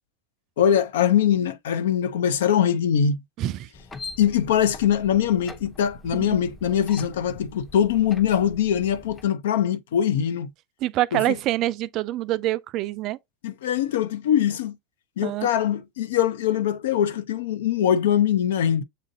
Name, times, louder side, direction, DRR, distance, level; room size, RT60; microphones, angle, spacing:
voice 1, 0.6-3.2 4.2-10.5 11.1-11.4 13.4-14.8 15.2-18.8, left 9 dB, 75° left, 0.4 m, -22 dB
voice 2, 3.4-3.7 6.1-6.4 10.8-13.2 15.2-15.6, right 15 dB, 50° right, 0.3 m, -26 dB
sound 1, 3.7-9.3, left 3 dB, 20° left, 0.7 m, -43 dB
6.7 x 2.5 x 2.6 m
hypercardioid pair, 90°, 0 cm